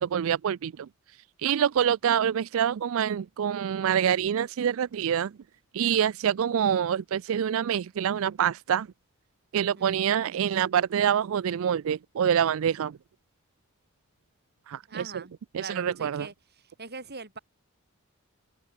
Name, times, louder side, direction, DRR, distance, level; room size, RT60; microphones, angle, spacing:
voice 1, 0.0-5.3 5.7-8.9 9.5-13.0 14.7-15.1 15.5-16.3, right 8 dB, 65° right, 0.4 m, -26 dB
voice 2, 9.8-10.1 14.9-15.3 15.6-17.4, right 4 dB, 50° right, 7.3 m, -42 dB
open air
head